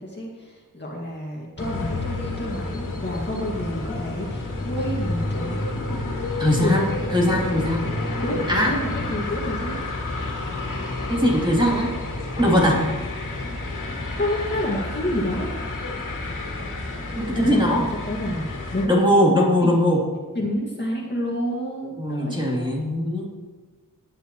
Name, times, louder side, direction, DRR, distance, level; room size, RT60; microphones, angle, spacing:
voice 1, 0.0-5.8 6.5-6.9 8.2-9.8 14.2-15.5 17.5-18.9 19.6-19.8 20.3-22.7, equal, 35° left, -2 dB, 2.0 m, -29 dB
sound 1, 1.6-18.9, left 2 dB, 70° left, 2.5 m, -30 dB
voice 2, 6.4-7.9 8.5-8.7 11.1-12.0 12.4-12.8 17.2-17.8 18.9-20.0 22.0-23.3, equal, 15° right, -4 dB, 3.1 m, -20 dB
18.0 x 9.9 x 3.1 m, 1.3 s
wide cardioid pair, 135°, 32 cm